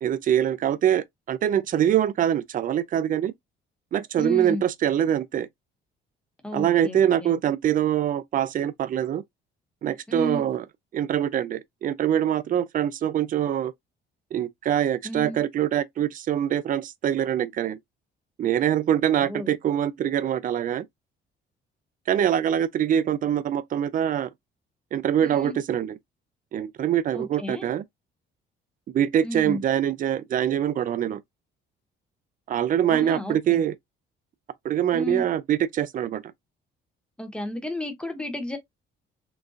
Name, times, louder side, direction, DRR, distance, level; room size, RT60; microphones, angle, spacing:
voice 1, 0.0-3.3 3.9-5.5 6.5-9.2 9.8-10.7 10.9-13.7 14.3-17.8 18.4-20.8 22.1-24.3 24.9-26.0 26.5-27.8 28.9-31.2 32.5-33.7 34.6-36.2, right 10 dB, 45° right, 0.4 m, -24 dB
voice 2, 4.2-4.6 6.4-7.4 10.1-10.4 15.0-15.4 19.2-19.5 25.2-25.6 27.1-27.7 29.2-29.6 32.9-33.6 34.9-35.3 37.2-38.6, left 1 dB, 5° left, 0.9 m, -33 dB
3.9 x 2.2 x 2.5 m
cardioid pair, 100°, 20 cm